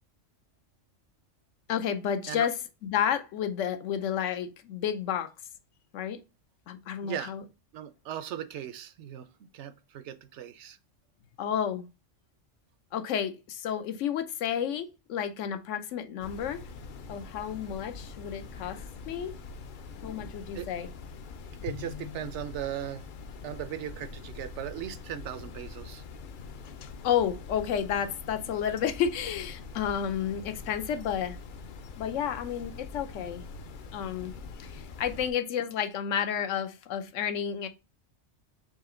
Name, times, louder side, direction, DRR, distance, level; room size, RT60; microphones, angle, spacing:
voice 1, 1.7-2.6 2.8-5.3 5.9-6.2 6.7-7.4 11.4-11.8 12.9-16.6 17.1-19.4 19.9-20.9 21.7-22.2 26.8-31.4 32.0-33.4 33.9-34.3 34.6-37.7, left 8 dB, 90° left, 1.0 m, -31 dB
voice 2, 7.0-7.3 7.7-9.3 9.5-10.8 20.5-20.7 21.6-23.0 23.4-26.0, right 10 dB, 75° right, 0.8 m, -38 dB
sound 1, 16.2-35.3, left 4 dB, 60° left, 0.6 m, -44 dB
4.2 x 2.8 x 3.6 m
omnidirectional pair, 1.2 m